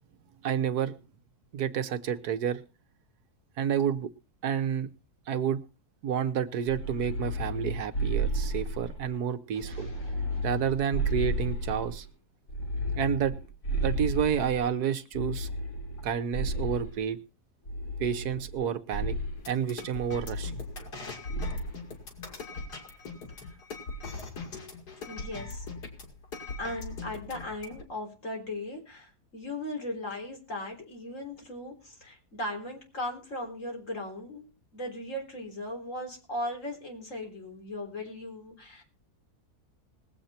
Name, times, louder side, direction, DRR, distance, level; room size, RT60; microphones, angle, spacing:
voice 1, 0.4-1.0 1.5-2.6 3.6-4.1 4.4-4.9 5.3-5.6 6.0-9.9 10.4-12.1 12.9-13.3 13.8-15.5 16.0-17.2 18.0-19.2 19.5-20.6, right 8 dB, 75° right, 1.5 m, -29 dB
sound 1, 6.7-9.1 9.6-12.0 12.5-14.7 15.1-17.0 17.7-18.6 18.9-19.4 20.3-21.0 21.3-21.7, right 1 dB, 75° left, 3.8 m, -32 dB
voice 2, 9.5-10.9 23.3-23.6 25.1-25.7 26.6-38.8, left 1 dB, 50° left, 4.2 m, -38 dB
sound 2, 19.4-27.8, left 3 dB, 90° left, 2.9 m, -41 dB
20.0 x 8.0 x 4.3 m
omnidirectional pair, 1.7 m